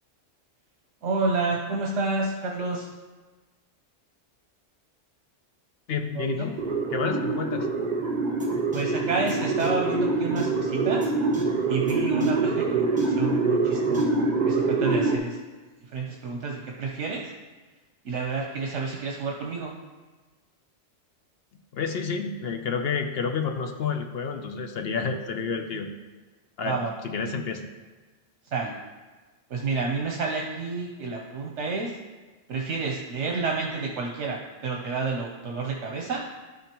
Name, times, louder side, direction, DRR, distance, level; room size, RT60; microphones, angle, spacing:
voice 1, 1.0-2.9 6.1-6.5 8.7-11.1 11.7-14.2 14.5-15.4 15.8-17.3 18.0-19.7 26.6-26.9 28.5-28.8 29.5-31.9 32.5-36.2, right 4 dB, 75° right, 0 dB, 1.1 m, -29 dB
voice 2, 5.9-6.5 6.9-7.7 21.7-25.9 26.6-26.8 27.0-27.6, left 5 dB, 60° left, 6 dB, 0.8 m, -29 dB
sound 1, 6.6-15.2, right 3 dB, 40° right, 1.0 m, -25 dB
sound 2, 8.4-8.5 8.7-8.8 9.3-9.4 9.6-9.7 10.4-10.5 11.0-11.1 11.3-11.4 11.9-12.0 12.2-12.3 13.0-13.1 13.9-14.0, right 1 dB, 5° right, 1.5 m, -38 dB
12.5 x 5.3 x 3.0 m, 1.3 s
omnidirectional pair, 1.2 m